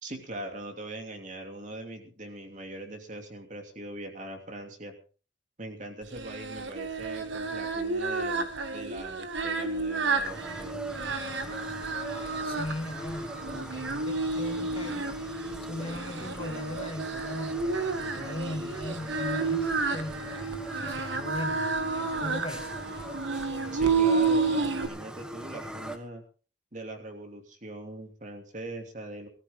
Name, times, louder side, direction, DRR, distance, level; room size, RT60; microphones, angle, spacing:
voice 1, 0.0-4.9 5.6-10.8 23.7-26.2 26.7-29.3, right 1 dB, 40° right, 4 dB, 2.9 m, -41 dB
Singing, 6.1-24.9, right 4 dB, 75° right, 1.9 m, -31 dB
sound 1, 10.2-26.0, right 1 dB, 5° right, 1.4 m, -41 dB
voice 2, 12.4-15.1 15.7-21.7 22.2-22.8, left 1 dB, 30° left, 5 dB, 2.0 m, -39 dB
19.0 x 14.0 x 3.8 m, 0.37 s
head